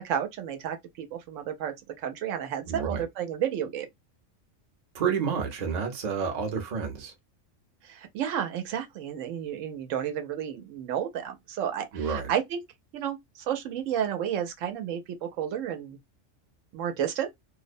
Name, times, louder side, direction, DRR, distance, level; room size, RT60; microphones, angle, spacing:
voice 1, 0.0-3.9 7.8-12.6 12.9-16.0 16.7-17.3, right 9 dB, 85° right, 0.9 m, -32 dB
voice 2, 2.7-3.0 4.9-7.1 11.9-12.3, right 6 dB, 40° right, 0.7 m, -29 dB
2.4 x 2.1 x 2.5 m
omnidirectional pair, 1.3 m